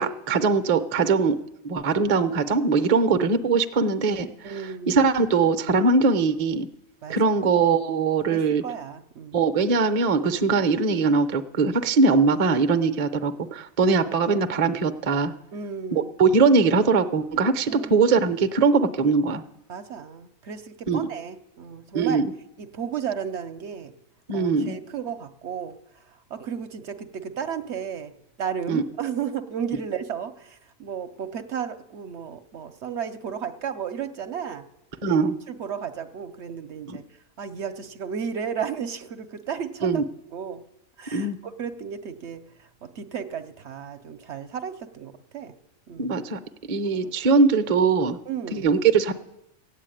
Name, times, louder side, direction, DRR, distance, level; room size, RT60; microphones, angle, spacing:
voice 1, 0.0-1.4 1.6-6.7 7.1-8.6 9.3-15.3 15.9-19.4 20.9-21.0 21.9-22.3 24.3-24.8 28.7-28.8 35.0-35.4 36.9-37.0 39.8-40.0 41.1-41.4 46.0-46.4 46.7-48.2 48.5-49.1, right 4 dB, 35° right, 10 dB, 0.6 m, -21 dB
voice 2, 4.4-5.0 7.0-7.2 8.3-9.4 15.5-16.1 17.7-18.1 19.7-22.2 22.6-23.9 24.3-25.7 26.3-28.1 28.4-34.6 35.1-35.2 35.5-37.0 37.4-40.0 40.3-40.6 41.0-42.4 42.8-45.5 45.9-46.2 47.0-47.1 48.3-48.7, right 7 dB, 60° right, 9 dB, 0.9 m, -33 dB
14.5 x 8.5 x 9.0 m, 0.89 s
omnidirectional pair, 1.4 m